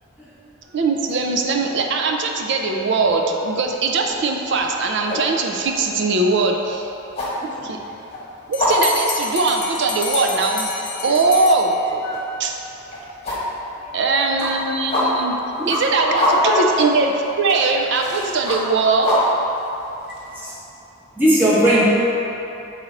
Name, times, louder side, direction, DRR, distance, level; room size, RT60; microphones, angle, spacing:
voice 1, 0.7-6.9 7.6-7.8 8.5-10.7 11.0-11.8 12.4-12.6 13.9-19.1, right 3 dB, 55° right, 2 dB, 0.4 m, -20 dB
sound 1, 2.9-3.2 3.6-20.5, left 1 dB, 30° left, 1.3 m, -26 dB
Bell, 8.5-12.2, left 5 dB, 50° left, 0.6 m, -29 dB
voice 2, 16.1-16.6 20.4-20.5 21.2-21.8, right 1 dB, 10° right, -9 dB, 1.2 m, -18 dB
7.1 x 4.1 x 4.0 m, 3.0 s
head